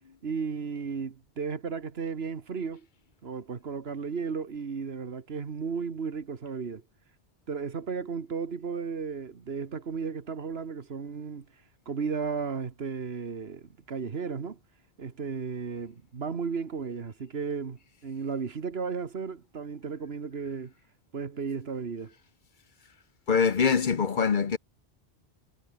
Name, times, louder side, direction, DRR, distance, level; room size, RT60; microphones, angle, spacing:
voice 1, 0.2-2.9 3.2-6.8 7.5-11.5 11.9-14.6 15.0-20.7 21.1-22.1, right 5 dB, 75° right, 1.7 m, -34 dB
voice 2, 23.3-24.6, left 6 dB, 50° left, 1.0 m, -23 dB
omnidirectional pair, 1.1 m